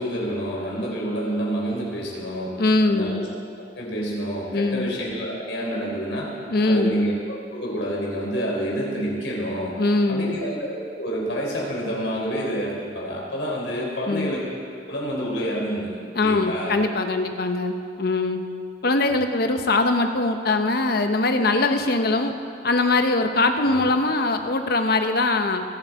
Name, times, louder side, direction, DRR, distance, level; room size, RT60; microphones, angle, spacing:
voice 1, 0.0-2.5 2.9-3.2 3.8-6.3 6.6-9.7 10.1-14.4 14.9-15.9 16.2-16.7 18.8-18.9 23.6-23.8, equal, 85° left, -3 dB, 3.8 m, -28 dB
voice 2, 2.6-3.3 4.5-4.9 6.5-7.1 9.8-10.4 14.1-14.3 16.1-18.4 18.8-22.3 22.6-25.6, left 2 dB, 60° left, 7 dB, 0.9 m, -22 dB
23.5 x 7.9 x 4.7 m, 2.4 s
head